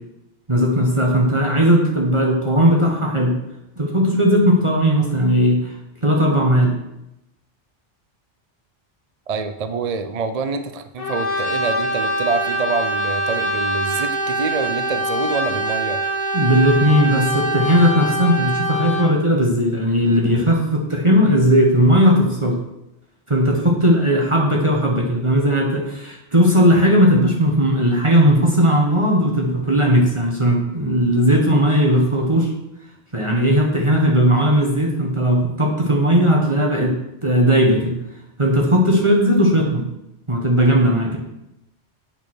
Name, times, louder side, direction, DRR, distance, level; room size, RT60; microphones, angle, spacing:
voice 1, 0.5-3.4 3.8-5.7 6.0-6.7 16.3-22.6 23.3-32.5 33.1-38.0 38.4-39.8 40.3-41.2, equal, 25° right, -1 dB, 1.5 m, -17 dB
voice 2, 9.3-16.0, right 4 dB, 45° right, 10 dB, 0.5 m, -26 dB
Brass instrument, 11.0-19.2, right 1 dB, 80° left, 2.1 m, -23 dB
8.8 x 5.4 x 6.3 m, 0.87 s
omnidirectional pair, 1.2 m